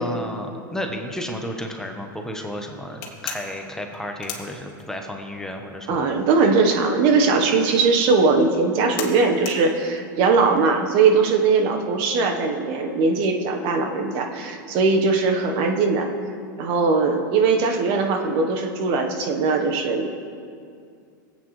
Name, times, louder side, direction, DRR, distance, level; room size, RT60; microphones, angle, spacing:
voice 1, 0.0-6.1, equal, 5° left, 3 dB, 1.1 m, -32 dB
sound 1, 3.0-5.2 5.5-11.3, left 7 dB, 55° left, 1.9 m, -37 dB
voice 2, 5.9-16.1 16.6-20.1, right 4 dB, 50° right, 4 dB, 1.2 m, -20 dB
18.5 x 8.6 x 3.3 m, 2.3 s
hypercardioid pair, 110°, 11 cm